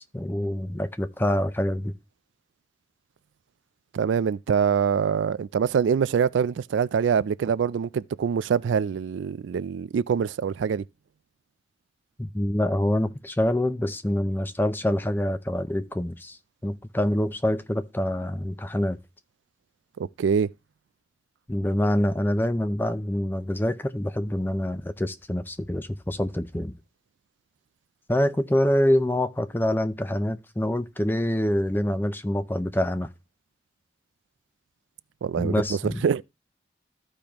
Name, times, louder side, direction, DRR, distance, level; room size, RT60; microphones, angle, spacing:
voice 1, 0.1-1.9 12.2-19.0 21.5-26.7 28.1-33.1 35.4-36.0, left 1 dB, 10° left, 0.5 m, -26 dB
voice 2, 3.9-10.8 20.0-20.5 35.2-36.2, right 7 dB, 85° right, 0.3 m, -24 dB
14.0 x 5.1 x 2.9 m
head